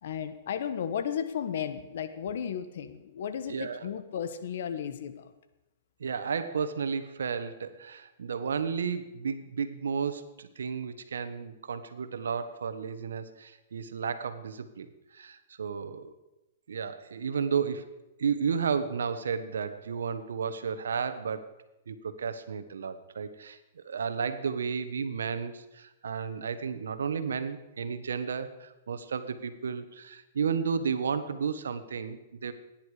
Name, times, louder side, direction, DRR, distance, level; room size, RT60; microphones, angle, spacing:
voice 1, 0.0-5.3, left 8 dB, 70° left, 10 dB, 1.4 m, -34 dB
voice 2, 3.5-3.9 6.0-16.1 16.7-17.8 18.2-21.5 21.9-32.5, right 6 dB, 90° right, 11 dB, 1.2 m, -33 dB
17.0 x 10.0 x 5.0 m, 0.98 s
hypercardioid pair, 135°, 0 cm